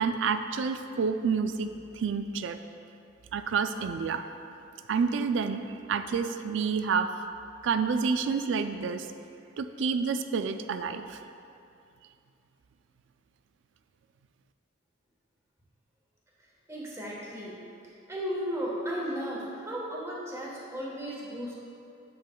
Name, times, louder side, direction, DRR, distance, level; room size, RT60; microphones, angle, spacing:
voice 1, 0.0-2.6 3.3-4.2 4.9-5.6 5.9-7.1 7.6-9.1 9.6-11.2, right 5 dB, 65° right, 9 dB, 0.3 m, -29 dB
voice 2, 16.7-17.6 18.1-21.5, equal, 15° right, -5 dB, 1.2 m, -35 dB
7.7 x 7.4 x 2.2 m, 2.6 s
head